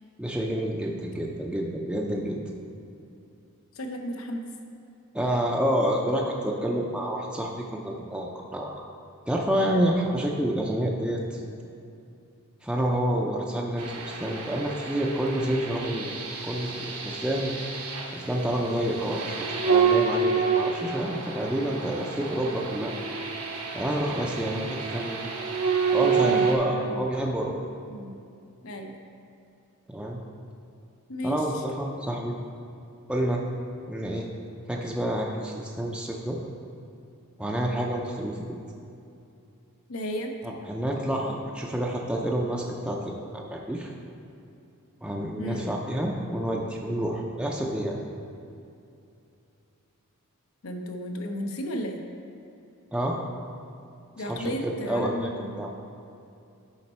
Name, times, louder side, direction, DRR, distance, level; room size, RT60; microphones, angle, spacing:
voice 1, 0.2-2.4 5.1-8.8 9.3-11.4 12.6-16.1 16.4-17.5 18.1-23.0 23.7-25.2 25.9-27.5 29.9-30.2 31.2-32.3 33.1-33.4 33.9-34.3 34.7-36.4 37.4-38.4 40.4-43.9 45.0-48.0 52.9-53.2 54.2-55.3 55.6-55.7, right 1 dB, 5° right, -2 dB, 0.5 m, -28 dB
voice 2, 3.7-4.5 26.0-27.0 27.9-28.1 28.6-28.9 31.1-31.6 39.9-40.3 45.4-45.7 50.6-52.0 54.2-55.7, equal, 65° left, 4 dB, 0.8 m, -34 dB
sound 1, 13.8-26.6, right 5 dB, 80° right, 1.1 m, -28 dB
10.5 x 4.4 x 4.3 m, 2.6 s
head